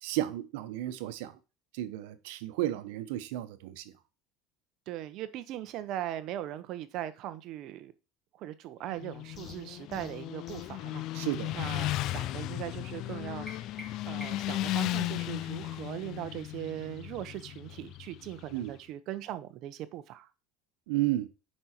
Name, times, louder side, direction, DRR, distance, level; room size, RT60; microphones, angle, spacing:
voice 1, 0.0-1.4 1.7-3.8 11.1-11.6 18.5-18.7 20.9-21.3, right 15 dB, 85° right, 1.1 m, -33 dB
voice 2, 4.9-7.9 8.3-11.1 11.5-13.7 14.1-20.3, right 13 dB, 55° right, 0.9 m, -39 dB
Motorcycle, 8.9-18.7, left 16 dB, 55° left, 0.3 m, -36 dB
sound 1, 9.3-10.8, left 4 dB, 35° left, 1.8 m, -50 dB
sound 2, 13.5-14.7, left 1 dB, ahead, 2.3 m, -47 dB
8.7 x 5.5 x 4.4 m
cardioid pair, 135°, 0 cm